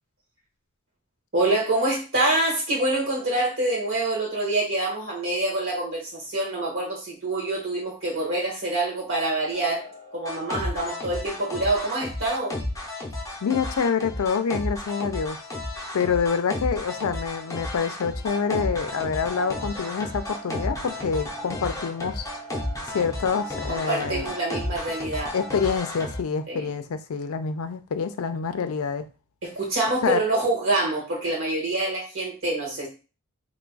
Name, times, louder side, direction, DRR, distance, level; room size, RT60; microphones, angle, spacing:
voice 1, 1.3-9.8 10.1-12.6 23.7-25.4 26.5-26.7 29.4-32.9, right 2 dB, 60° right, -3 dB, 1.5 m, -26 dB
sound 1, 9.5-26.2, left 1 dB, 15° left, 0.6 m, -33 dB
voice 2, 13.4-15.4 15.9-22.3 22.9-24.3 25.3-29.0 30.0-30.2, left 6 dB, 75° left, 10 dB, 0.4 m, -26 dB
3.1 x 2.3 x 3.8 m, 0.32 s
head